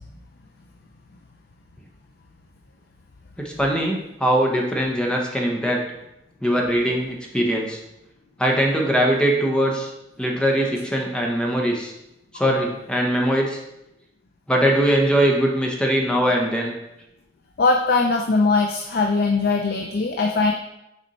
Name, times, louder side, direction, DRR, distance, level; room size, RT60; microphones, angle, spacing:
voice 1, 3.4-5.8 6.4-7.8 8.4-9.9 10.2-11.9 12.3-13.6 14.5-16.7, equal, 5° left, 0 dB, 0.7 m, -21 dB
voice 2, 17.6-20.5, left 3 dB, 55° left, 3 dB, 0.5 m, -20 dB
6.4 x 4.2 x 4.1 m, 0.89 s
head